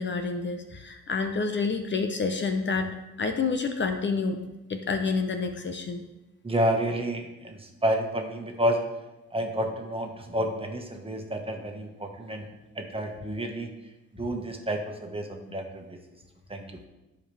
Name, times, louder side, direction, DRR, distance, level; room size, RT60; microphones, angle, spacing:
voice 1, 0.0-4.4 4.7-6.0, left 4 dB, 40° left, 6 dB, 0.8 m, -28 dB
voice 2, 6.4-8.8 9.3-12.5 12.7-13.7 14.1-16.0 16.5-16.6, equal, 20° right, 2 dB, 1.5 m, -30 dB
13.5 x 5.1 x 3.5 m, 1.0 s
cardioid pair, 90°, 30 cm